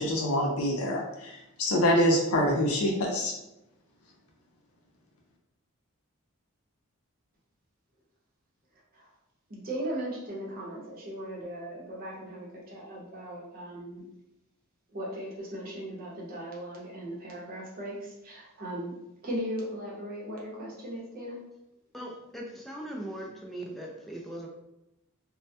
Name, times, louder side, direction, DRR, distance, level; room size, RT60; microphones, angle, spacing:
voice 1, 0.0-3.3, equal, 80° left, 0 dB, 0.5 m, -26 dB
voice 2, 9.5-14.0 14.9-19.0 19.2-21.4, right 1 dB, 45° right, -4 dB, 0.7 m, -38 dB
voice 3, 21.9-24.5, right 1 dB, ahead, -2 dB, 0.3 m, -39 dB
2.1 x 2.1 x 2.7 m, 0.89 s
head